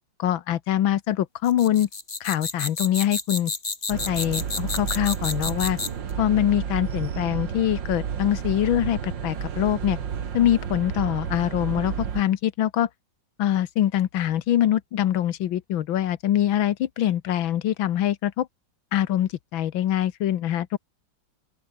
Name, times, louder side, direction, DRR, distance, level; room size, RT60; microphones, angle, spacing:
voice 1, 0.2-1.9 2.2-3.5 3.9-5.8 6.2-10.0 10.3-12.9 13.4-18.5 18.9-20.8, left 11 dB, 85° left, 1.8 m, -24 dB
sound 1, 1.4-6.1, left 3 dB, 30° left, 2.4 m, -30 dB
sound 2, 3.9-12.2, right 8 dB, 70° right, 2.3 m, -31 dB
open air
omnidirectional pair, 2.1 m